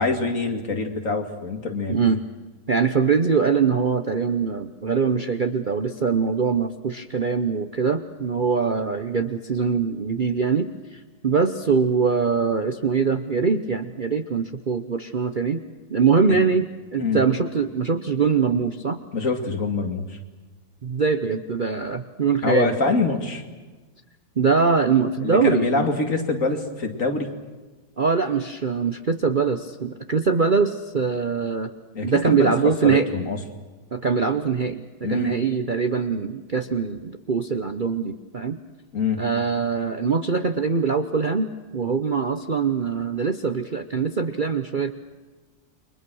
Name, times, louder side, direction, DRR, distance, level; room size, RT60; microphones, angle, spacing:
voice 1, 0.0-2.0 16.3-16.4 17.0-17.2 19.1-20.2 22.4-23.4 25.2-27.3 31.9-32.5 32.8-33.4 35.0-35.4 38.9-39.2, left 3 dB, 55° left, 5 dB, 2.7 m, -25 dB
voice 2, 1.9-2.2 2.7-15.6 15.9-16.7 16.9-19.0 20.8-22.7 24.4-25.9 28.0-31.7 32.0-33.1 33.9-38.6 39.2-44.9, right 5 dB, 40° right, 8 dB, 0.8 m, -23 dB
29.5 x 23.0 x 6.3 m, 1.3 s
omnidirectional pair, 1.7 m